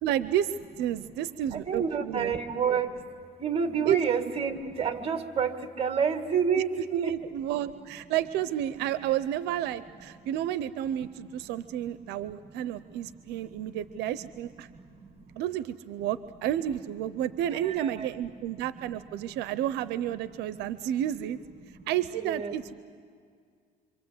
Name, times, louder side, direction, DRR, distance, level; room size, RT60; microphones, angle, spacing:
voice 1, 0.0-2.3 3.9-4.0 6.7-14.7 15.4-21.4 21.9-22.7, right 11 dB, 85° right, 14 dB, 0.6 m, -31 dB
voice 2, 1.5-3.1 3.4-6.7 7.0-7.1 11.9-12.0 12.2-12.5 12.8-13.7 14.6-15.3 17.5-18.1 18.6-19.0 19.3-19.4 20.4-20.9 21.6-22.6, right 6 dB, 35° right, 7 dB, 2.0 m, -30 dB
26.5 x 25.5 x 8.0 m, 2.1 s
cardioid pair, 110°, 17 cm